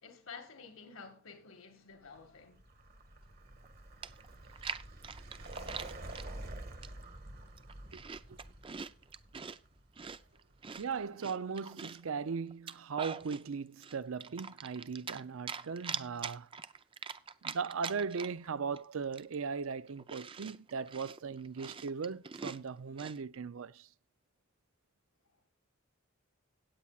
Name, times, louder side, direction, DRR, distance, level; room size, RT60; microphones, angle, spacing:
voice 1, 0.0-2.6 4.6-4.7, left 5 dB, 80° left, 1.9 m, -51 dB
Vehicle, 2.0-10.8, right 1 dB, 45° right, 1.6 m, -48 dB
Chewing mastication, 3.6-3.7 4.0-6.3 6.8-7.2 7.5-9.6 10.0-12.1 12.5-13.4 13.8-15.2 15.5-18.5 18.8-18.9 19.1-23.2, right 6 dB, 25° right, 0.4 m, -44 dB
voice 2, 10.7-16.5 17.4-23.9, right 5 dB, 75° right, 0.5 m, -38 dB
17.5 x 8.6 x 2.4 m
head